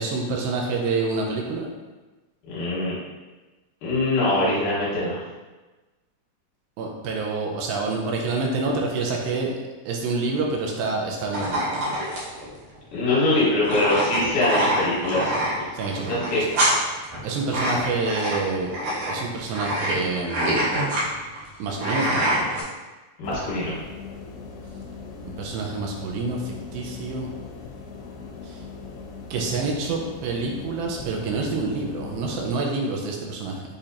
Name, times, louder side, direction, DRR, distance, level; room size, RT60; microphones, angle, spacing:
voice 1, 0.0-1.7 6.8-9.5 9.9-11.8 15.7-16.7 17.2-18.7 19.1-20.6 21.6-22.5 25.2-27.3 28.4-28.6 29.3-33.6, right 3 dB, 85° right, 0 dB, 2.3 m, -27 dB
voice 2, 2.5-2.9 3.8-5.2 12.9-15.4 16.1-16.4 23.2-23.8, left 2 dB, 70° left, -7 dB, 2.5 m, -23 dB
sound 1, 11.3-22.6, right 1 dB, 65° right, 1.6 m, -26 dB
sound 2, 23.2-32.5, left 5 dB, 90° left, 2.5 m, -39 dB
6.7 x 2.8 x 2.5 m, 1.2 s
omnidirectional pair, 4.3 m